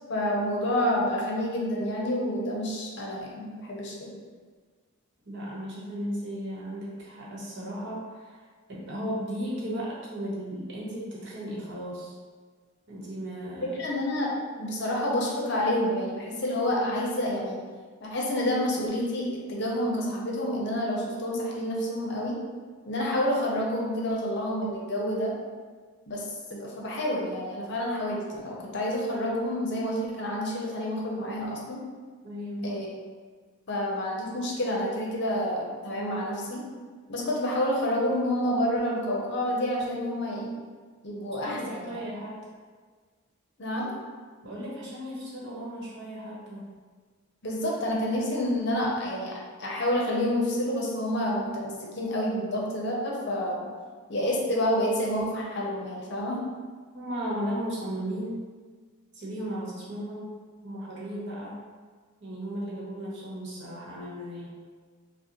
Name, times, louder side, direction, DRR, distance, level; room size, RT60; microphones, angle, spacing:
voice 1, 0.1-4.1 13.8-14.3 14.6-17.6 18.0-22.3 22.8-25.3 26.1-31.8 32.6-32.9 33.7-36.6 37.1-40.5 41.0-42.0 43.6-43.9 47.4-53.6 54.1-56.4, left 1 dB, 55° left, -3 dB, 0.7 m, -28 dB
voice 2, 5.3-8.4 8.7-12.2 12.9-13.8 32.2-32.8 41.4-42.4 44.4-46.7 56.9-58.4 59.1-60.3 60.6-61.6 62.2-64.5, equal, 55° right, -5 dB, 1.0 m, -35 dB
5.2 x 2.1 x 3.0 m, 1.5 s
head